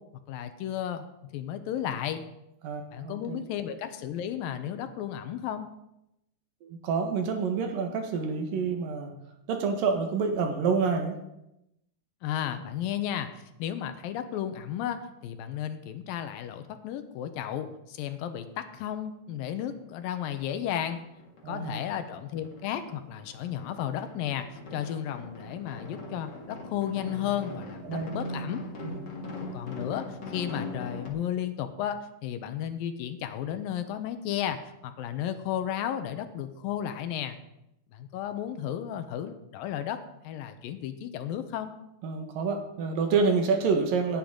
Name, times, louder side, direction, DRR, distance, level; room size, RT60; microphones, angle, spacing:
voice 1, 0.3-1.1 1.3-2.2 2.9-5.7 12.2-13.3 13.6-21.0 21.5-28.6 29.4-37.4 37.9-41.7, left 10 dB, 85° left, 9 dB, 2.6 m, -33 dB
voice 2, 2.6-3.4 6.6-9.1 9.5-11.2 21.4-21.9 27.8-28.2 28.8-29.0 42.0-44.2, right 5 dB, 75° right, 4 dB, 3.1 m, -28 dB
sound 1, 19.9-20.0 20.3-21.5 21.8-31.1, left 1 dB, 35° left, 2.0 m, -41 dB
17.5 x 9.1 x 3.8 m, 0.86 s
omnidirectional pair, 4.1 m